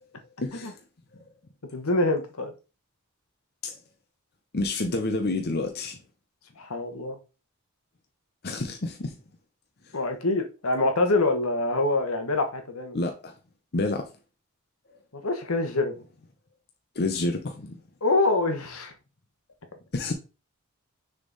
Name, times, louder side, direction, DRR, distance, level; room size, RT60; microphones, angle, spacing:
voice 1, 0.4-0.8 3.6-3.8 4.5-6.0 8.4-9.2 12.9-13.3 13.7-14.1 16.9-17.8 19.9-20.1, left 2 dB, 45° left, 0.7 m, -29 dB
voice 2, 1.7-2.5 6.6-7.2 9.9-13.0 15.1-15.9 18.0-18.9, left 2 dB, 75° left, 1.2 m, -25 dB
6.5 x 3.7 x 4.0 m
head